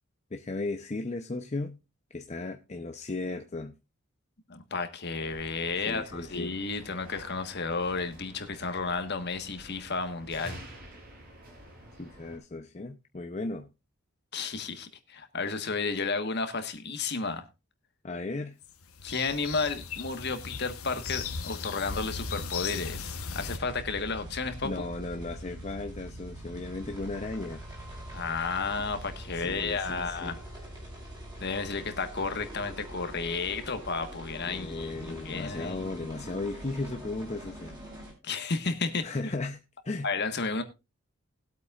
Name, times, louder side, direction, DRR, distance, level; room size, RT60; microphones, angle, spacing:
voice 1, 0.3-1.8 2.1-3.7 5.9-6.5 12.0-13.7 18.0-18.6 24.6-27.6 29.3-30.3 34.5-37.8 39.0-40.1, left 2 dB, 30° left, 0.7 m, -36 dB
voice 2, 4.5-10.6 14.3-17.5 19.0-24.8 28.1-30.4 31.4-35.9 38.2-39.3 40.0-40.6, left 4 dB, 50° left, 1.4 m, -32 dB
sound 1, 5.2-12.4, right 1 dB, 45° right, 5.2 m, -49 dB
sound 2, 18.6-23.6, left 5 dB, 85° left, 1.1 m, -37 dB
sound 3, 23.4-38.1, right 1 dB, 20° right, 6.1 m, -43 dB
20.0 x 8.3 x 2.4 m
head